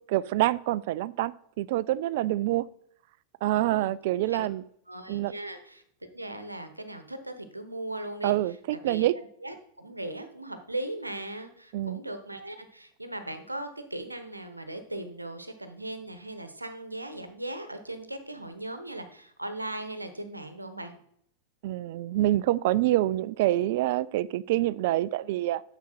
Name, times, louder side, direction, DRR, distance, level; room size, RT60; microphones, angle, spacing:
voice 1, 0.1-2.6 3.4-4.6 5.1-5.3 8.2-9.1 11.7-12.0 21.6-25.6, right 15 dB, 50° right, 19 dB, 0.3 m, -26 dB
voice 2, 3.6-3.9 4.3-4.5 4.9-5.8 6.1-8.3 8.7-9.1 9.4-20.9, right 1 dB, 85° right, 9 dB, 1.0 m, -38 dB
9.5 x 7.1 x 4.3 m, 0.68 s
figure-of-eight pair, 90°, 0 cm